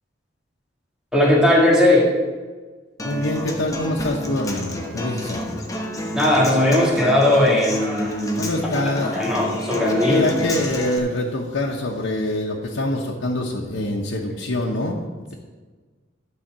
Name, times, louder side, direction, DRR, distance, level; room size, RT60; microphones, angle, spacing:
voice 1, 1.1-2.1 6.1-8.6 8.8-10.3, left 1 dB, 5° right, -3 dB, 1.7 m, -18 dB
voice 2, 3.0-5.6 8.4-9.4 10.0-15.0, left 1 dB, 90° left, -2 dB, 1.0 m, -25 dB
Human voice / Acoustic guitar, 3.0-11.0, left 1 dB, 15° left, 1.1 m, -29 dB
12.0 x 4.2 x 7.4 m, 1.4 s
head